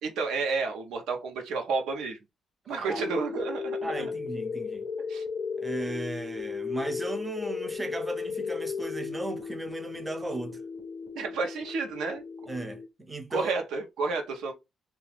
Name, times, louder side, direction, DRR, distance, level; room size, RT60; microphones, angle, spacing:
voice 1, 0.0-2.2 2.7-4.1 5.1-5.2 11.2-12.2 13.3-14.5, right 4 dB, 85° right, 0.6 m, -31 dB
voice 2, 2.7-3.0 3.8-4.8 5.6-10.6 12.5-13.6, right 1 dB, 15° right, 0.5 m, -36 dB
sound 1, 2.9-12.9, left 5 dB, 75° left, 0.5 m, -35 dB
2.3 x 2.3 x 3.2 m
cardioid pair, 90°, 0 cm